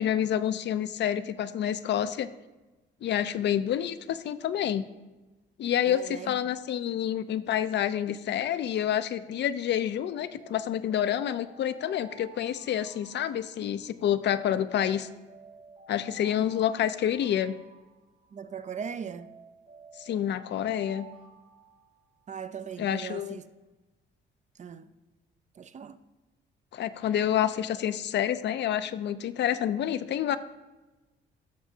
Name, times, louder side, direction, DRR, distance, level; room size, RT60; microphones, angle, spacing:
voice 1, 0.0-2.3 3.0-4.9 5.6-15.1 15.9-17.6 20.0-21.1 22.8-23.4 26.7-30.4, left 10 dB, 60° left, 0.5 m, -28 dB
voice 2, 5.9-6.4 16.1-16.2 18.3-19.3 22.3-23.5 24.6-24.9 25.6-26.0, right 7 dB, 35° right, 0.4 m, -39 dB
Alarm, 10.4-14.1 14.8-18.5 19.2-22.4, right 3 dB, 80° right, 3.2 m, -53 dB
14.5 x 6.0 x 2.8 m
cardioid pair, 90°, 20 cm